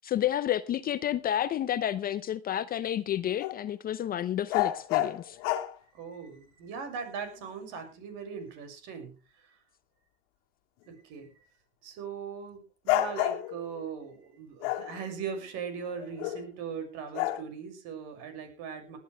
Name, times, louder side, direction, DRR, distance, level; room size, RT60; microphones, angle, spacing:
voice 1, 0.0-5.4, left 11 dB, 25° left, 0.7 m, -30 dB
sound 1, 3.4-3.6 4.5-5.7 7.7-7.8 12.9-13.8 14.6-16.5 17.1-17.4, left 14 dB, 60° left, 1.9 m, -30 dB
voice 2, 5.9-9.6 10.8-11.3 11.8-19.0, right 6 dB, 55° right, 6.4 m, -40 dB
19.5 x 11.5 x 3.4 m
supercardioid pair, 125°, 34 cm